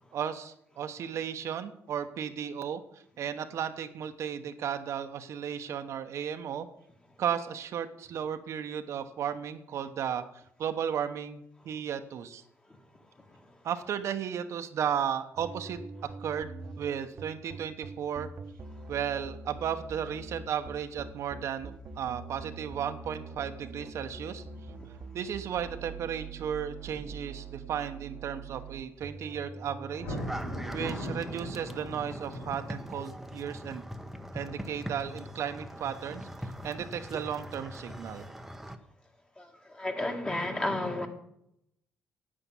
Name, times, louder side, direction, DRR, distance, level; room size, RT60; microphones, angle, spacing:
voice 1, 0.1-6.7 7.2-12.4 13.6-18.3 18.9-24.4 25.1-30.2 30.7-33.8 34.3-36.3 36.6-38.3, right 8 dB, 60° right, 8 dB, 1.0 m, -34 dB
sound 1, 15.4-31.1, right 4 dB, 40° right, 1.1 m, -44 dB
Thunder, 29.9-33.2, equal, 85° left, 3.7 m, -39 dB
sound 2, 30.2-38.8, equal, 5° right, 0.9 m, -42 dB
voice 2, 39.8-41.1, left 1 dB, 15° left, 4 dB, 1.9 m, -31 dB
10.0 x 8.8 x 7.2 m, 0.78 s
cardioid pair, 110°, 5 cm